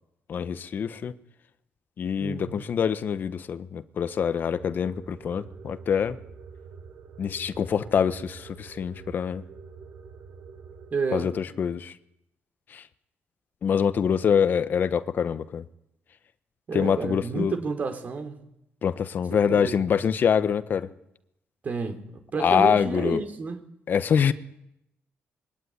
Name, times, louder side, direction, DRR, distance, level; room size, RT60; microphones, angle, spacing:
voice 1, 0.3-1.2 2.0-6.2 7.2-9.4 11.1-11.9 12.7-12.8 13.6-15.6 16.7-17.6 18.8-20.9 22.4-23.3 23.9-24.3, left 7 dB, 45° left, 1.3 m, -25 dB
voice 2, 2.2-2.7 10.9-11.3 16.7-18.4 19.5-19.9 21.6-23.6, right 4 dB, 40° right, 3.5 m, -30 dB
sound 1, 4.5-10.9, right 5 dB, 65° right, 4.2 m, -46 dB
26.0 x 22.5 x 9.8 m
cardioid pair, 140°, 4 cm